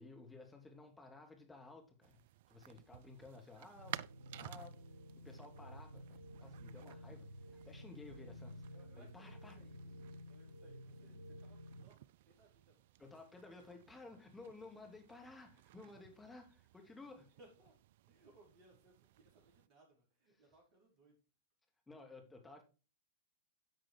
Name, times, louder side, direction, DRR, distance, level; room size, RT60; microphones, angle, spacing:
voice 1, 0.0-2.2 2.5-4.0 4.4-4.7 5.2-7.3 7.7-8.6 9.0-9.6 13.0-17.3 21.9-22.6, left 3 dB, 10° left, 2.7 m, -55 dB
sound 1, 2.0-19.7, right 14 dB, 55° right, 0.3 m, -56 dB
sound 2, 3.7-11.8, equal, 85° right, 1.7 m, -53 dB
voice 2, 7.8-8.3 8.7-9.8 10.2-13.2 13.5-13.6 17.3-17.8 18.1-21.2, right 2 dB, 35° right, 4.7 m, -67 dB
11.0 x 6.2 x 4.6 m
figure-of-eight pair, 100°, 0 cm